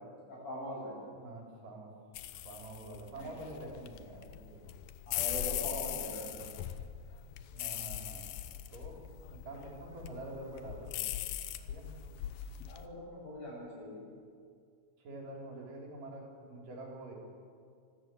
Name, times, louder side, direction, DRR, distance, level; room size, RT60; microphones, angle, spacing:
voice 1, 0.3-1.0 3.1-3.6 5.1-6.4 12.7-14.0, equal, 45° left, -4 dB, 8.8 m, -42 dB
voice 2, 1.2-1.9 2.4-4.6 5.7-5.8 7.5-8.2 8.7-9.0 9.4-11.1 11.7-11.9 15.0-17.1, right 2 dB, 65° right, -1 dB, 5.0 m, -46 dB
sound 1, 2.1-12.8, left 12 dB, 80° left, 2.6 m, -40 dB
25.0 x 14.5 x 7.6 m, 2.2 s
omnidirectional pair, 4.2 m